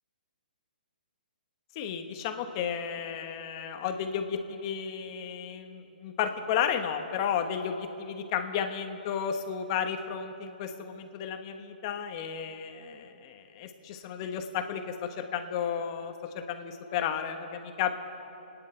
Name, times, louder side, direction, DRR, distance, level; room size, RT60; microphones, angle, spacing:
voice 1, 1.7-17.9, left 8 dB, 30° left, 6 dB, 1.2 m, -33 dB
29.5 x 10.0 x 4.5 m, 3.0 s
hypercardioid pair, 155°, 5 cm